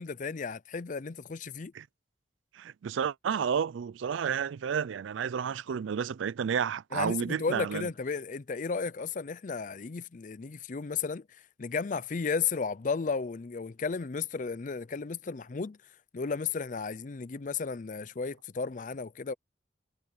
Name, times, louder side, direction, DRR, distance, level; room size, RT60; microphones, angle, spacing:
voice 1, 0.0-1.7 6.9-11.2 11.6-15.8 16.1-19.3, left 5 dB, 45° left, 0.5 m, -34 dB
voice 2, 2.5-7.9, right 7 dB, 80° right, 0.4 m, -31 dB
head